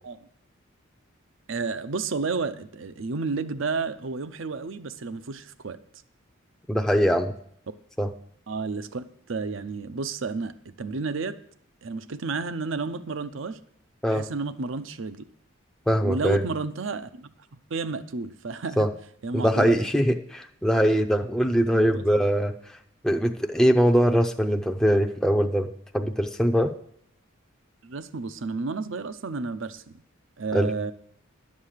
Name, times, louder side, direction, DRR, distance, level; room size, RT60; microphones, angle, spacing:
voice 1, 1.5-5.8 8.5-11.4 11.8-13.6 14.1-15.3 16.0-17.3 17.7-18.9 19.2-19.8 21.7-22.0 23.6-23.8 24.1-24.2 27.8-30.0 30.4-30.9, right 4 dB, 65° right, 13 dB, 0.6 m, -31 dB
voice 2, 6.7-7.3 8.0-8.1 14.0-14.3 15.9-16.4 18.8-18.9 19.3-22.5 23.0-26.7 30.5-30.7, equal, 5° left, 3 dB, 0.6 m, -22 dB
11.5 x 7.4 x 6.5 m, 0.68 s
head